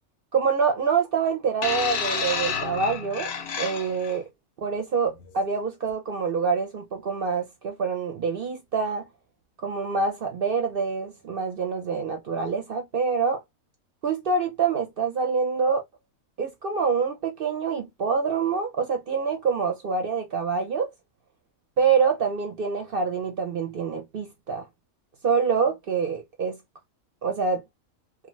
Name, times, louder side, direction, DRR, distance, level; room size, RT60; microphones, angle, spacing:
voice 1, 0.3-3.3 3.6-4.3 4.6-9.1 9.6-13.4 14.0-15.8 16.4-20.9 21.8-24.6 25.2-26.6 27.2-27.6, right 5 dB, 55° right, 0.7 m, -26 dB
sound 1, 1.6-4.2 5.1-5.3, left 6 dB, 60° left, 0.7 m, -30 dB
2.4 x 2.3 x 3.1 m
omnidirectional pair, 1.4 m